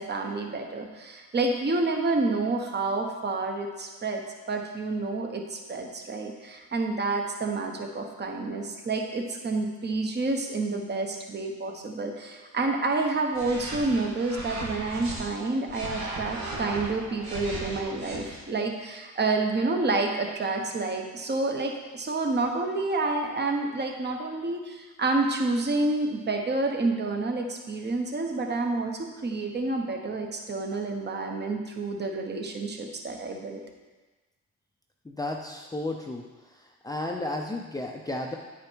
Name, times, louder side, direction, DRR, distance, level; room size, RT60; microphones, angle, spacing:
voice 1, 0.0-33.6, right 3 dB, 35° right, 2 dB, 1.2 m, -29 dB
sound 1, 13.3-15.2 15.7-18.4, right 2 dB, 65° right, 1.9 m, -36 dB
voice 2, 35.1-36.2 36.8-38.4, left 2 dB, 10° left, 0 dB, 0.7 m, -32 dB
9.5 x 5.0 x 4.6 m, 1.2 s
cardioid pair, 90°, 30 cm